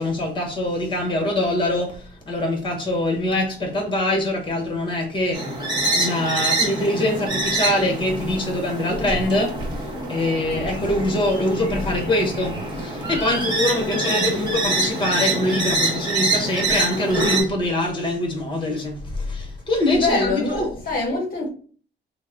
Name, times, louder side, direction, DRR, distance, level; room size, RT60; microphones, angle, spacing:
voice 1, 0.0-5.5 5.9-20.7, left 1 dB, 25° left, 1.1 m, -23 dB
sound 1, 5.3-17.4, right 2 dB, 20° right, 1.3 m, -25 dB
voice 2, 13.7-14.1 19.9-21.5, left 3 dB, 50° left, 0.9 m, -25 dB
3.1 x 2.1 x 3.5 m
cardioid pair, 90°, 20 cm